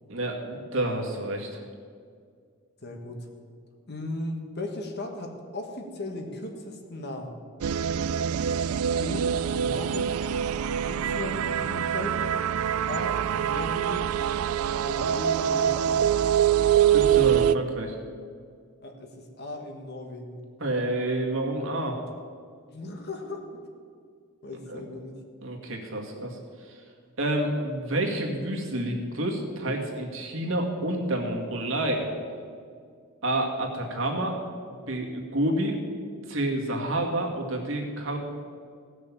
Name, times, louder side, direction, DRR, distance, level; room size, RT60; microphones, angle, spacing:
voice 1, 0.1-1.6 16.9-18.0 20.6-22.0 24.7-24.8 25.4-26.4 26.7-26.8 27.2-32.1 33.2-34.4 34.7-35.8 36.3-38.2, right 1 dB, 65° right, 1 dB, 1.9 m, -29 dB
voice 2, 2.8-3.3 3.9-7.3 9.0-9.3 9.5-10.2 10.9-12.2 12.9-14.1 14.8-16.0 18.8-20.4 22.7-23.4 24.4-25.1, left 1 dB, 50° left, 3 dB, 1.6 m, -37 dB
sound 1, 7.6-17.6, right 9 dB, 85° right, 0.4 m, -24 dB
16.5 x 6.5 x 7.2 m, 2.1 s
head